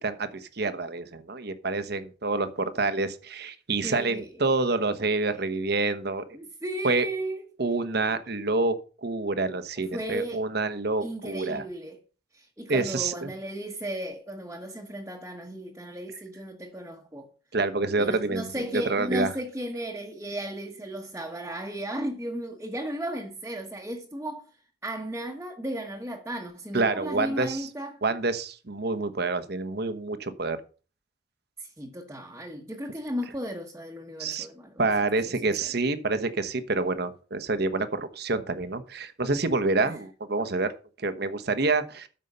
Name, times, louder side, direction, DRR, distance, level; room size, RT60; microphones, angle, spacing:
voice 1, 0.0-6.4 6.8-7.0 7.6-8.7 9.0-11.6 12.7-13.3 17.5-19.3 26.7-27.7 28.0-30.6 34.2-34.5 34.8-42.1, right 3 dB, 55° right, 1.1 m, -27 dB
voice 2, 3.8-4.5 5.3-5.4 6.3-7.5 9.9-10.5 11.0-12.0 12.3-17.3 17.9-24.5 24.8-28.0 31.6-34.8 35.2-35.7 39.8-40.0, right 1 dB, 15° right, 1.2 m, -35 dB
13.0 x 5.5 x 5.5 m
head